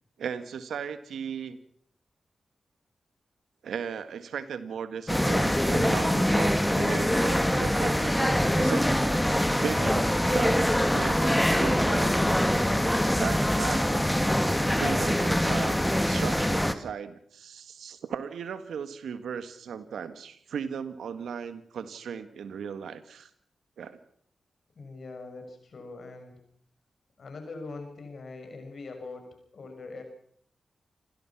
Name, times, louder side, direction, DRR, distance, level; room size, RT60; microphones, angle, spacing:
voice 1, 0.2-1.6 3.6-12.2 13.2-14.1 14.8-23.3 23.8-24.0, right 7 dB, 85° right, 12 dB, 1.5 m, -36 dB
sound 1, 5.1-16.7, equal, 10° left, 2.1 m, -24 dB
voice 2, 24.7-26.3 27.2-30.0, left 3 dB, 65° left, 5 dB, 6.4 m, -42 dB
28.0 x 16.0 x 6.0 m, 0.63 s
supercardioid pair, 40°, 0 cm